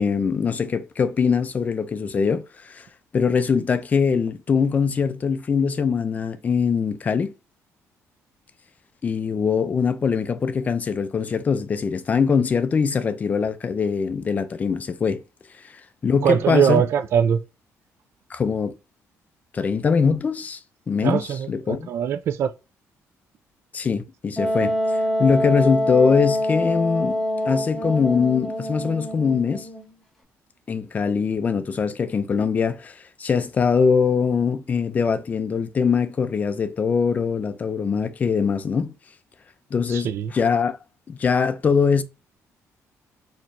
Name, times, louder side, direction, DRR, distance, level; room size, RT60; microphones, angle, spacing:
voice 1, 0.0-2.9 3.1-7.3 9.0-15.2 16.0-16.8 18.3-18.8 19.5-20.6 20.9-21.9 23.7-24.8 25.2-29.7 30.7-38.9 39.7-40.8 41.1-42.0, left 6 dB, 30° left, 0.4 m, -22 dB
voice 2, 16.2-17.4 21.0-22.5 39.9-40.3, right 8 dB, 50° right, 0.3 m, -22 dB
Wind instrument woodwind instrument, 24.4-29.9, left 1 dB, 5° left, 1.1 m, -25 dB
4.3 x 3.0 x 2.6 m
cardioid pair, 155°, 6 cm